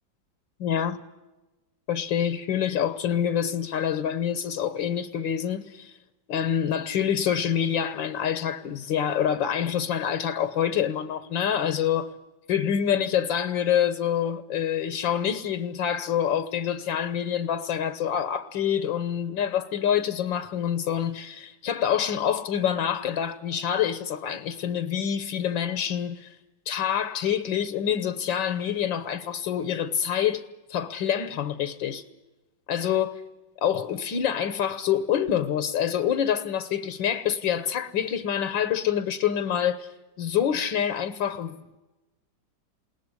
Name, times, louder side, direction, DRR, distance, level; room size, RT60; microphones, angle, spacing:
voice 1, 0.6-1.0 1.9-5.9 6.3-12.1 12.5-26.4 26.7-30.4 30.7-32.0 32.7-33.2 33.6-39.9 40.2-41.8, left 9 dB, 80° left, 1.8 m, -26 dB
21.0 x 18.5 x 9.7 m
omnidirectional pair, 2.1 m